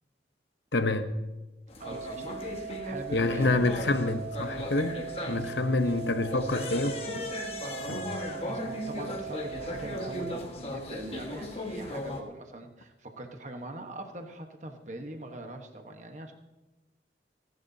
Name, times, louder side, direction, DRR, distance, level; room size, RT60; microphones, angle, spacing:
voice 1, 0.7-1.1 3.1-5.0 5.3-7.0 7.8-8.1, left 2 dB, 80° left, 0.9 m, -27 dB
sound 1, 1.7-12.2, left 1 dB, 35° left, 1.6 m, -37 dB
voice 2, 1.8-3.5 4.0-4.1 5.2-5.7 8.4-16.3, right 2 dB, 40° right, 1.3 m, -43 dB
sound 2, 1.8-10.4, right 7 dB, 60° right, 0.7 m, -40 dB
29.0 x 11.0 x 2.8 m
head